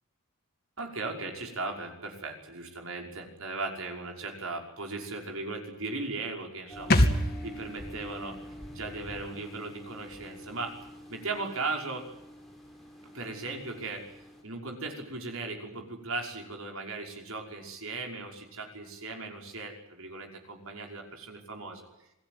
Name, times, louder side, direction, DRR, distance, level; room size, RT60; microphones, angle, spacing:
voice 1, 0.8-10.8 11.1-12.1 13.0-21.9, right 3 dB, 70° right, 2 dB, 5.7 m, -38 dB
sound 1, 6.7-14.4, equal, ahead, 6.0 m, -46 dB
sound 2, 6.9-10.4 10.7-10.8, left 1 dB, 45° left, 2.4 m, -30 dB
27.5 x 18.0 x 9.7 m, 0.90 s
head